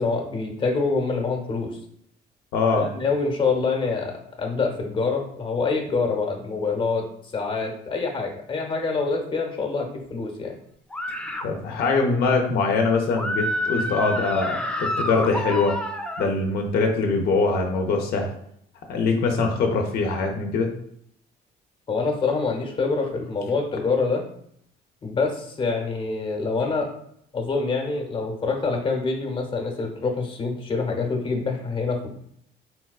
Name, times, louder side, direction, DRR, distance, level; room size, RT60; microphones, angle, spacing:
voice 1, 0.0-1.7 2.7-7.1 7.3-10.6 21.9-24.2 25.0-26.9 27.3-32.1, left 4 dB, 30° left, 1 dB, 0.7 m, -26 dB
voice 2, 2.5-2.9 11.4-15.7 16.2-18.3 18.9-20.7, left 4 dB, 70° left, 2 dB, 0.5 m, -23 dB
sound 1, 10.9-11.4 13.2-16.3, equal, 5° left, 0.3 m, -28 dB
4.1 x 2.2 x 2.3 m, 0.70 s
cardioid pair, 110°, 17 cm